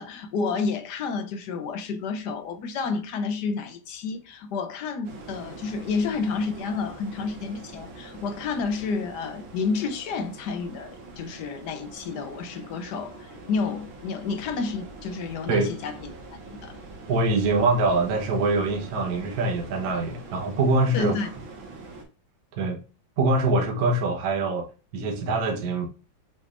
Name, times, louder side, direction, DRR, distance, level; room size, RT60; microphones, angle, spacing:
voice 1, 0.0-16.1 16.6-16.8 20.9-21.3, left 4 dB, 65° left, 1.3 m, -30 dB
sound 1, 5.0-22.0, right 2 dB, 85° right, 2.1 m, -43 dB
voice 2, 17.1-21.2 22.6-22.8 23.2-24.7 24.9-25.9, right 2 dB, 55° right, 1.4 m, -24 dB
6.3 x 3.4 x 2.4 m
omnidirectional pair, 2.1 m